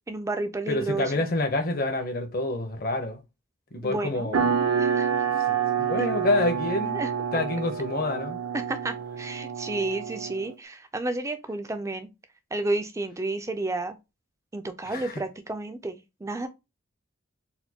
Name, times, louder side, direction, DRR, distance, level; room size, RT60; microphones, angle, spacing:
voice 1, 0.1-1.2 3.8-4.3 4.8-5.3 6.0-6.1 6.9-7.1 8.5-12.1 12.5-14.0 14.5-16.5, right 2 dB, 15° right, 0.3 m, -31 dB
voice 2, 0.7-3.2 3.7-4.4 5.5-7.0 7.3-8.4 14.8-15.2, left 2 dB, 40° left, 0.6 m, -27 dB
sound 1, 4.3-10.5, right 7 dB, 75° right, 0.6 m, -28 dB
4.1 x 2.2 x 2.8 m
head